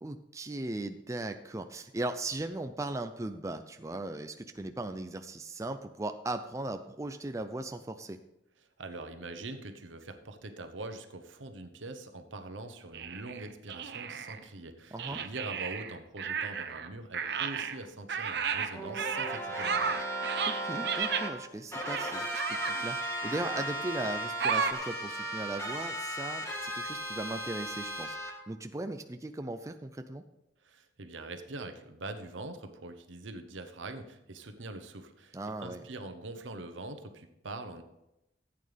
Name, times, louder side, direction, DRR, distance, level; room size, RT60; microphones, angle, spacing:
voice 1, 0.0-8.2 14.9-15.2 20.5-28.2 28.5-30.2 35.3-35.8, right 2 dB, 15° right, 7 dB, 0.4 m, -38 dB
voice 2, 8.8-20.1 30.6-37.8, right 2 dB, 85° right, 7 dB, 1.0 m, -43 dB
sound 1, 12.9-14.4 15.0-16.9 17.1-21.3 21.8-22.8 23.2-23.7 24.4-24.7, right 6 dB, 60° right, 0.7 m, -33 dB
sound 2, 18.7-21.3 21.7-28.3, right 1 dB, 15° left, 1.6 m, -36 dB
14.5 x 8.6 x 3.4 m, 0.89 s
head